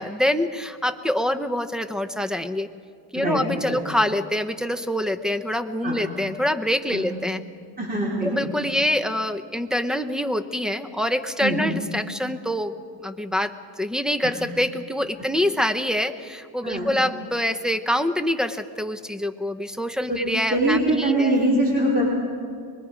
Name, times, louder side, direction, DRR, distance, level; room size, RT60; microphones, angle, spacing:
voice 1, 0.0-2.7 3.1-7.4 8.2-12.7 13.0-21.5, left 1 dB, ahead, 10 dB, 0.7 m, -25 dB
voice 2, 3.1-3.8 5.8-6.0 6.9-7.1 7.8-8.5 11.4-11.6 14.2-14.3 16.6-16.9 20.1-20.2 20.5-22.1, right 1 dB, 20° right, -4 dB, 3.6 m, -23 dB
24.0 x 21.0 x 5.1 m, 2.2 s
cardioid pair, 125°, 48 cm